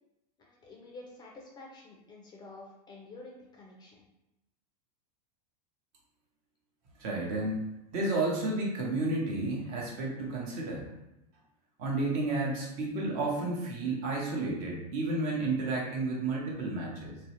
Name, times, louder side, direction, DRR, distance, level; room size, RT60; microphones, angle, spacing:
voice 1, 0.4-4.0, left 2 dB, 20° left, -2 dB, 0.4 m, -49 dB
voice 2, 7.0-7.6 7.9-10.9 11.8-17.2, right 2 dB, 50° right, -2 dB, 0.8 m, -31 dB
2.4 x 2.0 x 2.8 m, 0.91 s
supercardioid pair, 130°, 21 cm